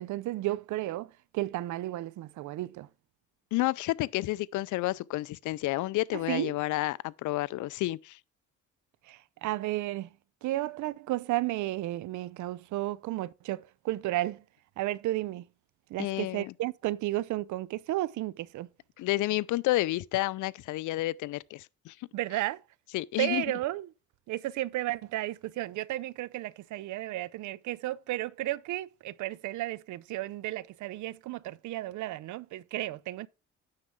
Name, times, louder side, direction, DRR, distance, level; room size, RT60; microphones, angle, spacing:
voice 1, 0.0-2.9 6.1-6.5 9.1-10.1 10.4-14.4 14.8-15.4 15.9-18.7 22.1-22.6 23.2-23.9 24.3-33.3, right 16 dB, 75° right, 0.5 m, -33 dB
voice 2, 3.5-8.2 16.0-16.5 19.0-22.0 22.9-23.4, left 17 dB, 75° left, 0.5 m, -30 dB
9.6 x 6.6 x 3.5 m
cardioid pair, 90°, 30 cm